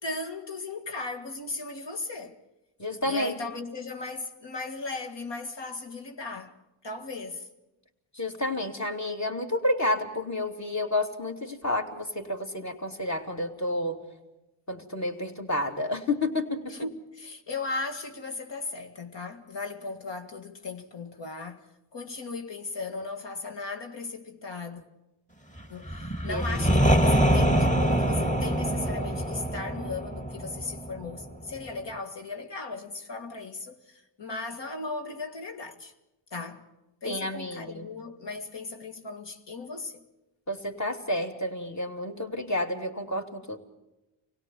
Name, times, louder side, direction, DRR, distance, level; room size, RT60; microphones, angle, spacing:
voice 1, 0.0-2.4 3.0-6.6 6.8-7.5 16.7-24.8 25.7-35.9 36.3-36.7 37.0-40.0, left 3 dB, 60° left, 2.0 m, -37 dB
voice 2, 2.8-3.3 8.2-14.0 14.7-16.7 26.3-26.4 37.0-37.9 40.5-43.6, left 1 dB, 35° left, 2.9 m, -30 dB
sound 1, 25.8-31.6, right 1 dB, 15° left, 2.2 m, -25 dB
25.0 x 17.5 x 7.4 m
cardioid pair, 55°, 48 cm